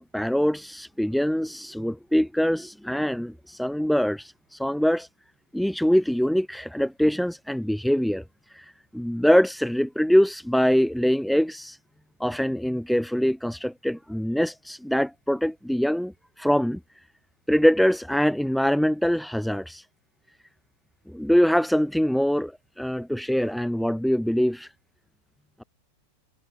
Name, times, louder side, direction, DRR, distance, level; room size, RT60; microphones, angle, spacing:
voice 1, 0.0-5.1 5.5-8.2 8.5-11.8 12.2-16.8 17.5-19.8 21.1-24.7, equal, ahead, 2.2 m, -23 dB
figure-of-eight pair, 90°, 0 cm